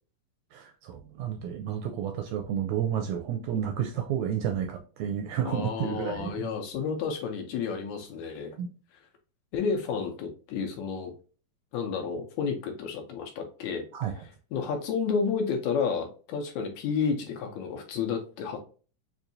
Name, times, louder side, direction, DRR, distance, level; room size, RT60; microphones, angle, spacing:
voice 1, 0.5-6.5 8.6-8.7 13.9-14.2, right 9 dB, 80° right, 5 dB, 1.7 m, -31 dB
voice 2, 5.4-8.6 9.5-11.1 11.7-14.1 14.5-18.6, left 6 dB, 75° left, 4 dB, 1.9 m, -31 dB
5.3 x 2.6 x 2.6 m, 0.37 s
omnidirectional pair, 3.7 m